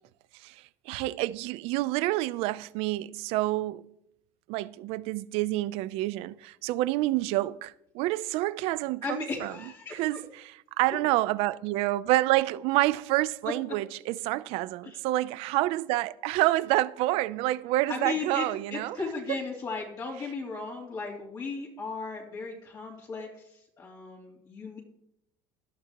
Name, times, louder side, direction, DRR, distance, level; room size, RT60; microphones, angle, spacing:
voice 1, 0.9-3.9 4.5-9.5 9.9-10.4 10.8-19.0, right 17 dB, 70° right, 0.6 m, -28 dB
voice 2, 9.0-10.2 14.8-15.0 17.9-24.8, left 4 dB, 35° left, 3.3 m, -36 dB
17.5 x 12.0 x 3.0 m
cardioid pair, 130°, 10 cm